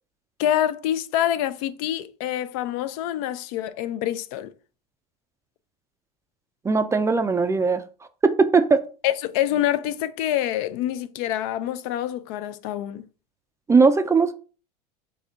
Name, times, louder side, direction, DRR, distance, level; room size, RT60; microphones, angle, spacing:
voice 1, 0.4-4.5 9.0-13.0, left 12 dB, 65° left, 0.4 m, -26 dB
voice 2, 6.6-7.8 8.2-8.8 13.7-14.3, right 4 dB, 15° right, 0.4 m, -19 dB
4.2 x 2.7 x 3.5 m
hypercardioid pair, 90°, 20 cm